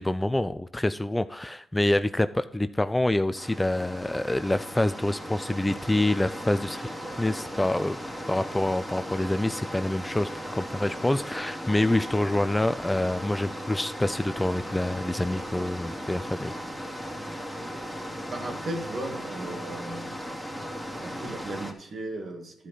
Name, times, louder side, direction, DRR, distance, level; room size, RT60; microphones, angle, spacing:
voice 1, 0.0-6.9 7.2-8.0 8.3-16.5 17.3-17.5, left 1 dB, 15° left, 12 dB, 0.5 m, -26 dB
sound 1, 3.3-21.7, equal, 5° right, 2.6 m, -37 dB
voice 2, 18.3-20.1 21.0-22.7, right 1 dB, 55° right, 2 dB, 2.3 m, -36 dB
12.5 x 5.1 x 5.6 m, 0.79 s
cardioid pair, 70°, 0 cm